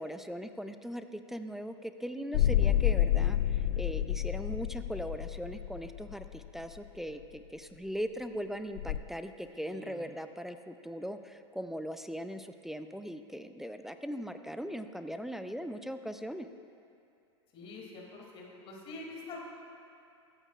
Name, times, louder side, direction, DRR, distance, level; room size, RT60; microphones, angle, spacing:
voice 1, 0.0-16.5, equal, ahead, 8 dB, 0.4 m, -39 dB
sound 1, 2.3-6.8 8.8-9.0, left 12 dB, 55° left, 0.4 m, -29 dB
voice 2, 9.5-10.0 17.5-19.4, left 2 dB, 40° left, -2 dB, 2.7 m, -46 dB
22.5 x 8.9 x 2.5 m, 2.5 s
hypercardioid pair, 90°, 15 cm